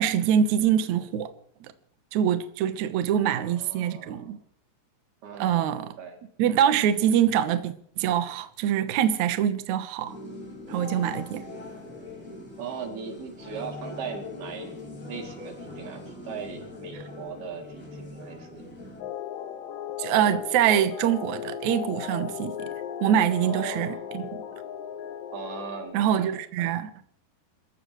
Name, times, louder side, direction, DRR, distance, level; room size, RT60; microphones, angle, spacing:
voice 1, 0.0-1.3 2.1-4.4 5.4-5.9 6.4-10.1 10.7-11.5 20.0-22.7 23.0-24.4 25.9-26.9, right 9 dB, 85° right, 1.6 m, -24 dB
voice 2, 3.1-4.3 5.2-6.2 12.6-14.7 15.1-18.7 23.4-24.1 25.3-26.7, right 5 dB, 65° right, 4.6 m, -39 dB
sound 1, 10.1-19.0, left 2 dB, 35° left, 6.4 m, -41 dB
sound 2, 19.0-25.9, left 9 dB, 85° left, 3.2 m, -36 dB
28.0 x 14.5 x 3.1 m
omnidirectional pair, 5.0 m